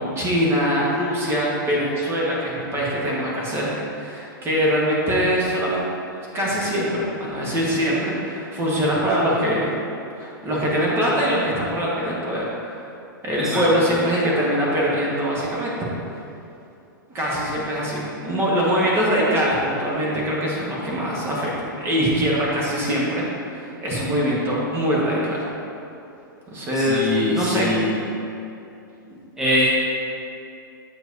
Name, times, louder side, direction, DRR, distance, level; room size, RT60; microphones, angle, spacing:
voice 1, 0.0-5.8 6.3-9.7 10.1-12.9 13.2-15.7 17.1-25.5 26.5-27.7 29.1-29.2, equal, 20° right, -5 dB, 1.3 m, -23 dB
voice 2, 26.7-27.9 29.4-29.6, left 1 dB, 5° right, -10 dB, 1.1 m, -23 dB
7.8 x 4.6 x 2.7 m, 2.7 s
hypercardioid pair, 115°, 11 cm